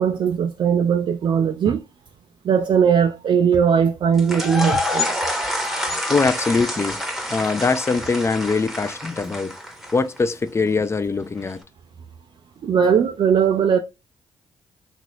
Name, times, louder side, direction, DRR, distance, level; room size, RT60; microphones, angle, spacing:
voice 1, 0.0-1.8 2.4-5.1 12.6-13.8, right 7 dB, 45° right, 0.3 m, -19 dB
sound 1, 4.2-10.2, left 1 dB, ahead, 0.9 m, -27 dB
voice 2, 6.1-7.0 7.3-9.5 9.9-11.6, left 4 dB, 25° left, 0.4 m, -22 dB
2.8 x 2.4 x 3.1 m
hypercardioid pair, 45°, 11 cm